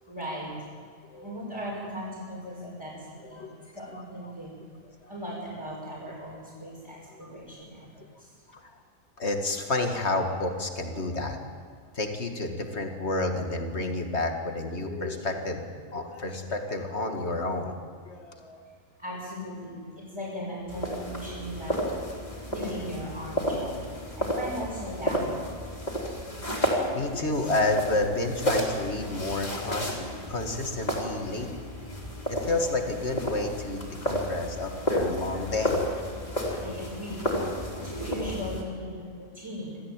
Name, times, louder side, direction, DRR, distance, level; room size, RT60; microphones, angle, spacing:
voice 1, 0.1-0.5 1.2-4.5 5.1-8.3 19.0-21.8 22.5-25.7 36.6-37.3 37.7-39.8, equal, 20° right, -7 dB, 6.1 m, -38 dB
voice 2, 3.2-3.6 7.2-7.3 8.5-8.7 9.2-11.5 11.9-15.6 15.9-18.6 24.0-24.2 26.6-31.5 32.3-36.0 36.3-36.7, left 2 dB, 50° left, 4 dB, 2.5 m, -30 dB
sound 1, 20.7-38.6, equal, 30° left, 4.3 m, -32 dB
27.0 x 15.5 x 9.2 m, 2.1 s
omnidirectional pair, 1.5 m